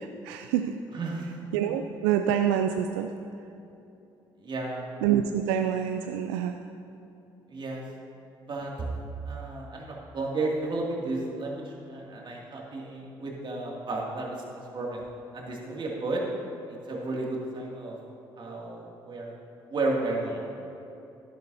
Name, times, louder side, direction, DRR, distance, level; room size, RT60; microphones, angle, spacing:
voice 1, 0.0-0.8 1.5-3.1 5.0-6.5, right 9 dB, 85° right, 7 dB, 0.4 m, -26 dB
voice 2, 0.9-1.4 4.4-4.8 7.5-7.9 8.4-8.9 9.3-15.0 15.3-16.2 16.7-18.0 18.4-19.3 19.7-20.4, right 2 dB, 45° right, -3 dB, 2.5 m, -33 dB
11.5 x 11.5 x 2.8 m, 2.8 s
hypercardioid pair, 55°, 11 cm